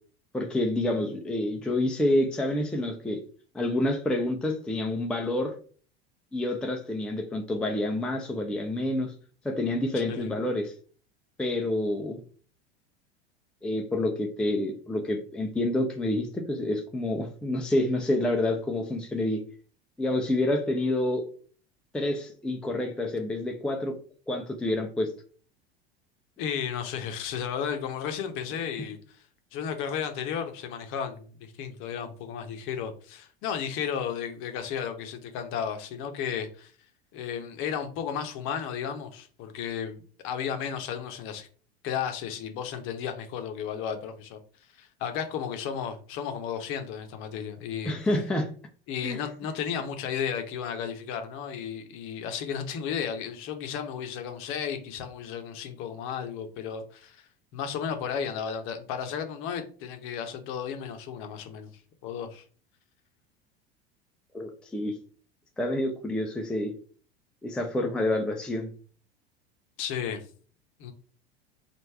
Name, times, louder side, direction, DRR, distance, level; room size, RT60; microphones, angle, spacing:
voice 1, 0.3-3.2 3.5-5.5 6.3-9.1 9.4-10.7 11.4-12.2 13.6-19.4 20.0-21.2 21.9-23.9 24.3-25.1 47.8-48.5 49.0-49.2 64.3-64.9 65.6-66.7 67.4-68.7, left 1 dB, 5° left, 0.5 m, -28 dB
voice 2, 9.9-10.3 26.4-29.0 29.5-36.7 37.1-41.5 41.8-44.4 44.8-47.9 48.9-57.2 57.5-61.7 62.0-62.4 69.8-70.2 70.8-70.9, left 8 dB, 40° left, 0.8 m, -33 dB
3.2 x 2.5 x 4.4 m
figure-of-eight pair, 75°, 31 cm